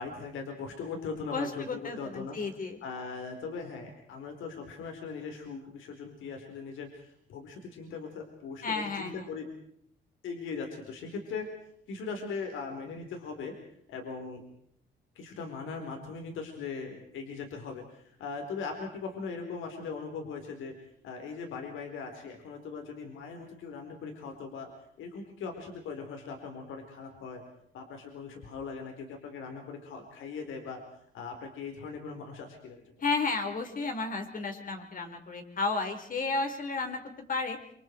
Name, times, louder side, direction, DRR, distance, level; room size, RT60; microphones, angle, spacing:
voice 1, 0.0-2.4 2.8-9.5 10.2-11.5 11.9-13.5 13.9-14.4 15.1-20.7 21.0-24.7 25.0-27.4 27.7-30.8 31.1-32.8, left 5 dB, 85° left, 4 dB, 4.5 m, -39 dB
voice 2, 1.3-2.8 8.6-9.3 33.0-37.0 37.3-37.6, left 3 dB, 45° left, 5 dB, 4.9 m, -32 dB
27.5 x 26.0 x 4.8 m, 0.67 s
cardioid pair, 90°, 20 cm